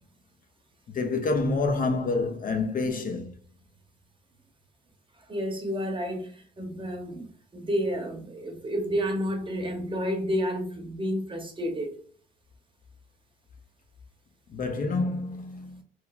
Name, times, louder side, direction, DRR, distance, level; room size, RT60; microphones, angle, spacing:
voice 1, 0.9-3.3 14.5-15.8, left 3 dB, 45° left, 0.5 m, -28 dB
voice 2, 5.3-11.9, equal, 25° right, 0.8 m, -30 dB
3.0 x 2.1 x 2.3 m
cardioid pair, 90°, 20 cm